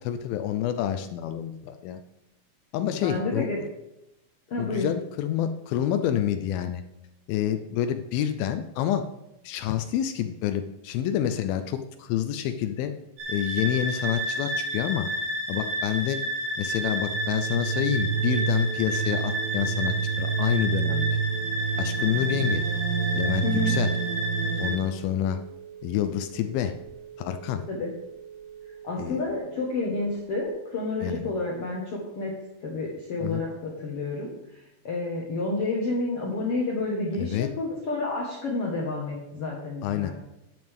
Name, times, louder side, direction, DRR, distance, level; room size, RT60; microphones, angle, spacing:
voice 1, 0.1-2.0 2.7-3.5 4.6-6.8 7.3-9.0 9.4-12.9 13.3-15.1 15.5-16.2 16.6-21.2 21.8-22.6 23.1-23.9 24.6-25.4 25.8-26.7 27.2-27.6 29.0-29.2 31.0-31.2 33.2-33.4 37.2-37.5 39.8-40.1, left 10 dB, 85° left, 8 dB, 2.4 m, -28 dB
voice 2, 3.0-3.6 4.5-4.9 23.4-23.7 27.7-27.9 28.8-32.3 32.6-40.1, left 3 dB, 55° left, -3 dB, 1.8 m, -30 dB
sound 1, 13.2-24.8, right 3 dB, 60° right, 1.5 m, -27 dB
Telephone, 23.7-30.5, right 8 dB, 25° left, 3.1 m, -45 dB
10.5 x 9.1 x 3.6 m, 0.87 s
omnidirectional pair, 4.2 m